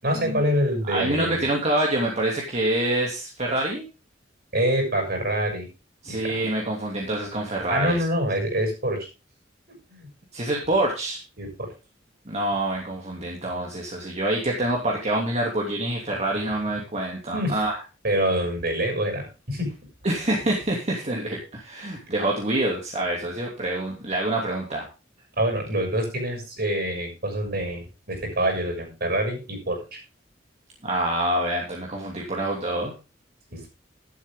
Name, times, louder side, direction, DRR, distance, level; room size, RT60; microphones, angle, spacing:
voice 1, 0.0-1.4 4.5-5.7 6.1-6.3 7.7-9.0 9.9-10.1 11.4-11.7 17.3-17.6 18.0-19.7 22.1-22.2 25.4-30.0 33.5-33.7, right 1 dB, 55° right, 3 dB, 6.9 m, -26 dB
voice 2, 0.8-3.8 6.0-8.0 10.3-11.2 12.2-17.7 20.0-24.9 30.8-32.9, right 1 dB, 35° right, -1 dB, 2.8 m, -26 dB
12.0 x 12.0 x 3.8 m, 0.30 s
head